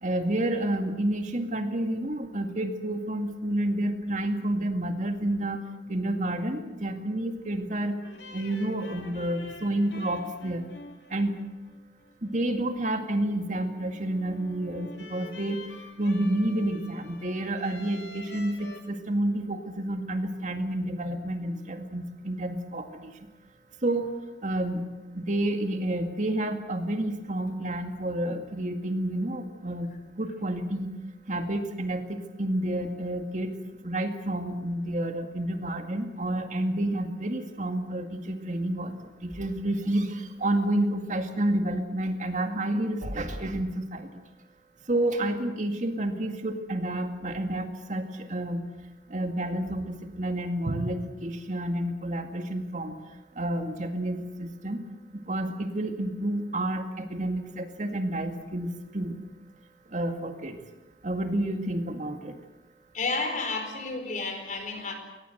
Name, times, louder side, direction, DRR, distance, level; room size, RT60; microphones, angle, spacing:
voice 1, 0.0-7.9 8.3-10.6 11.1-11.4 12.2-15.6 16.0-23.2 23.8-24.1 24.4-24.9 25.1-30.9 31.3-33.6 33.8-44.2 44.9-48.6 49.1-53.0 53.3-54.8 55.1-59.2 59.9-60.6 61.0-62.4, right 1 dB, 45° right, 6 dB, 2.1 m, -30 dB
sound 1, 8.0-18.8, left 2 dB, 75° left, 2.9 m, -47 dB
voice 2, 62.9-64.9, left 3 dB, 45° left, 6 dB, 4.6 m, -31 dB
23.0 x 19.0 x 8.0 m, 1.1 s
head